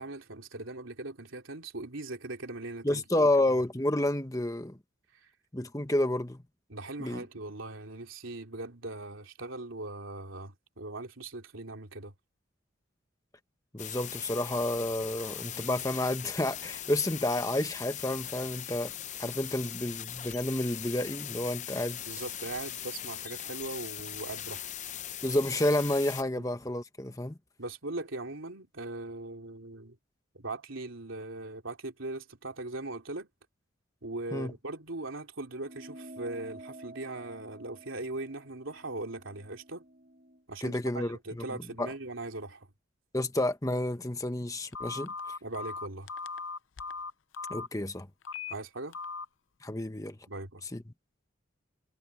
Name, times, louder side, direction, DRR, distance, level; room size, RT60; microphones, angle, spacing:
voice 1, 0.0-3.0 5.2-5.3 6.7-12.1 22.1-24.6 26.3-26.5 27.6-29.9 30.3-33.3 34.0-39.8 40.5-42.7 45.4-46.1 48.5-49.0 50.3-50.6, right 2 dB, 80° right, 3.0 m, -40 dB
voice 2, 2.8-4.8 5.5-6.4 7.0-7.2 13.7-18.9 19.2-22.2 25.2-27.3 34.3-34.5 40.6-41.4 41.8-41.9 43.1-45.1 47.5-48.1 49.6-50.2 50.7-50.8, left 1 dB, 15° left, 1.2 m, -30 dB
sound 1, 13.8-26.2, left 11 dB, 35° left, 0.7 m, -40 dB
sound 2, 35.6-40.4, right 1 dB, 40° right, 1.4 m, -50 dB
Telephone, 44.7-47.7 48.2-48.5 48.9-49.3, left 4 dB, 75° left, 0.6 m, -38 dB
head